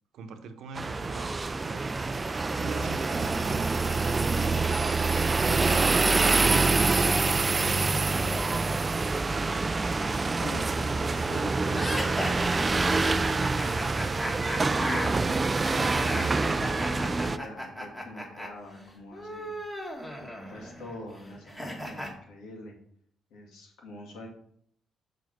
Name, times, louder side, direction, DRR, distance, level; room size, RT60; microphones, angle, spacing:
voice 1, 0.1-1.9 2.5-3.8 7.6-8.4, right 4 dB, 75° right, 7 dB, 0.9 m, -43 dB
sound 1, 0.7-17.4, right 3 dB, 25° right, 0.4 m, -26 dB
voice 2, 10.3-13.4 14.3-19.6 20.5-22.8 23.3-24.3, left 2 dB, 90° left, 0 dB, 2.3 m, -45 dB
sound 2, 11.7-18.5 18.7-22.1, equal, 10° left, 1.7 m, -36 dB
6.8 x 4.1 x 6.4 m, 0.67 s
cardioid pair, 90°, 0 cm